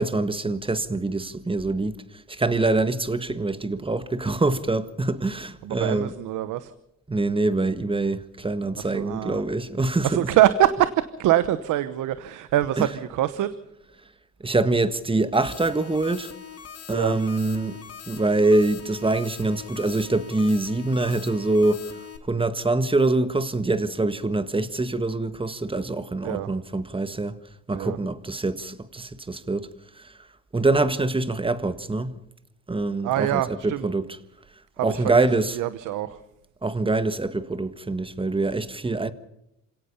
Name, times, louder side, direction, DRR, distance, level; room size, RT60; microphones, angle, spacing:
voice 1, 0.0-2.0 2.3-6.1 7.1-10.2 12.8-12.9 14.4-16.3 16.9-17.8 18.1-27.4 27.7-29.7 30.0-30.1 30.5-32.2 32.7-34.2 34.8-35.6 36.6-39.1, right 2 dB, 15° right, 1.6 m, -24 dB
voice 2, 5.6-6.7 8.8-9.4 10.0-13.6 16.9-17.2 26.2-26.5 27.7-28.0 33.0-33.9 34.8-35.3 35.5-36.2, right 13 dB, 90° right, 1.0 m, -24 dB
sound 1, 15.3-22.2, left 7 dB, 55° left, 2.7 m, -42 dB
27.5 x 17.5 x 5.5 m
cardioid pair, 90°, 30 cm